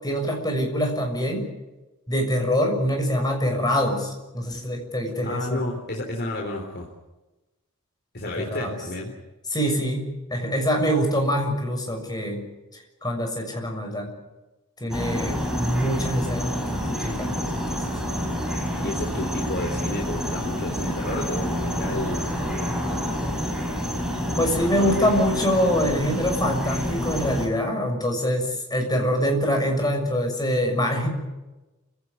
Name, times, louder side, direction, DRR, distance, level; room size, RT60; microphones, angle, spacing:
voice 1, 0.0-1.5 2.1-5.6 8.4-8.8 9.5-12.4 12.7-14.1 14.8-18.1 24.4-31.1, equal, 20° left, 3 dB, 6.6 m, -25 dB
voice 2, 5.2-6.9 8.1-9.1 18.8-22.3 24.6-25.0, left 1 dB, 50° left, 1 dB, 3.7 m, -31 dB
sound 1, 14.9-27.5, equal, 5° right, 5.6 m, -28 dB
28.0 x 17.5 x 9.6 m, 1.1 s
head